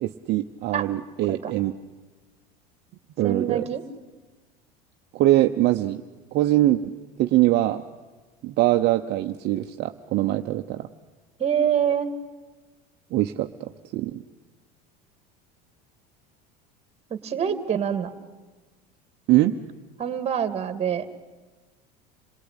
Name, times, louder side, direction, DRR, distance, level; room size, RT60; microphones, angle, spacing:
voice 1, 0.0-1.7 3.2-3.6 5.1-6.0 6.3-6.8 7.2-7.8 8.4-10.9 13.1-14.2 19.3-19.5, right 15 dB, 55° right, 5 dB, 1.0 m, -22 dB
voice 2, 3.2-3.8 11.4-12.1 17.1-18.1 20.0-21.1, right 8 dB, 30° right, 10 dB, 2.3 m, -25 dB
28.0 x 18.5 x 9.9 m, 1.3 s
supercardioid pair, 110°, 21 cm